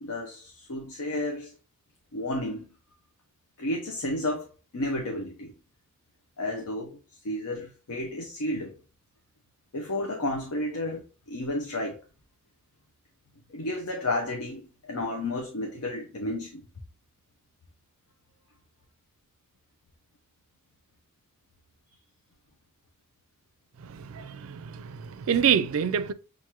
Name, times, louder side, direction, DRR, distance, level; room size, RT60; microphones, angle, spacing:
voice 1, 0.0-1.5 2.1-2.7 3.6-4.5 4.7-5.5 6.4-8.7 9.7-12.0 13.5-16.6 24.2-24.3, left 1 dB, 90° left, 0.7 m, -32 dB
voice 2, 23.8-26.1, right 8 dB, 70° right, 0.4 m, -27 dB
5.9 x 2.5 x 2.9 m
head